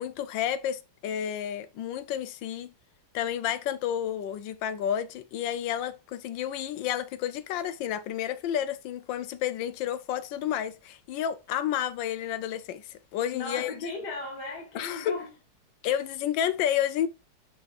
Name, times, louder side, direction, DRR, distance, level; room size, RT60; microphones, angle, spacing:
voice 1, 0.0-2.7 3.1-13.7 14.7-15.1 15.8-17.1, left 10 dB, 85° left, 1.4 m, -30 dB
voice 2, 13.3-15.3 15.9-16.0, left 3 dB, 65° left, 2.1 m, -36 dB
11.5 x 4.2 x 2.5 m
omnidirectional pair, 2.0 m